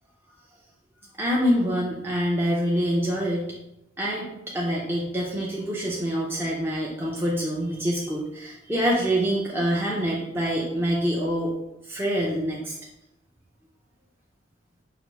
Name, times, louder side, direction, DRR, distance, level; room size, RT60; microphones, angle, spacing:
voice 1, 1.2-3.5 4.0-4.3 4.5-11.5 11.8-12.7, equal, 10° right, -5 dB, 0.5 m, -25 dB
4.8 x 2.6 x 3.1 m, 0.87 s
head